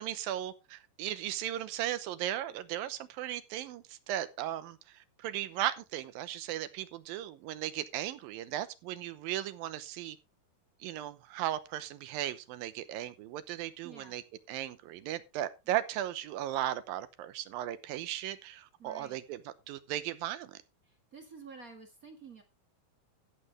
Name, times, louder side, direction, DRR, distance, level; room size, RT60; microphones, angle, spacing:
voice 1, 0.0-10.2 10.8-14.2 14.5-20.6, right 12 dB, 75° right, 2.5 m, -36 dB
voice 2, 13.8-14.2 18.8-19.2 20.8-22.4, right 4 dB, 55° right, 0.9 m, -50 dB
15.0 x 7.9 x 3.3 m
omnidirectional pair, 4.4 m